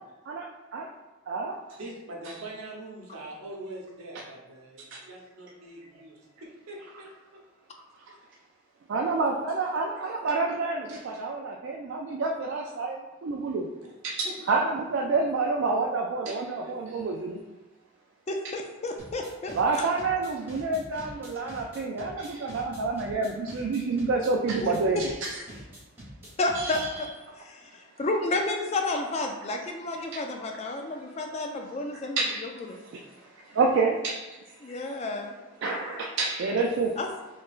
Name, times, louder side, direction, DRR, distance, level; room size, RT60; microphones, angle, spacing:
voice 1, 1.7-7.4 13.8-13.9 14.2-14.5 16.2-17.0 25.2-25.6, right 1 dB, 85° right, -2 dB, 0.9 m, -43 dB
voice 2, 8.9-13.7 14.0-17.4 19.5-25.3 26.5-26.9 30.1-30.2 32.2-32.5 33.5-34.3 34.7-34.8 35.6-36.9, right 3 dB, 60° right, 0 dB, 0.3 m, -28 dB
voice 3, 18.3-19.6 24.6-24.7 26.4-27.1 27.4-32.2 32.7-32.8 34.6-35.4 37.0-37.1, left 2 dB, 30° left, 3 dB, 0.3 m, -31 dB
sound 1, 19.0-27.0, equal, 10° right, 0.9 m, -45 dB
4.2 x 3.1 x 2.4 m, 1.1 s
head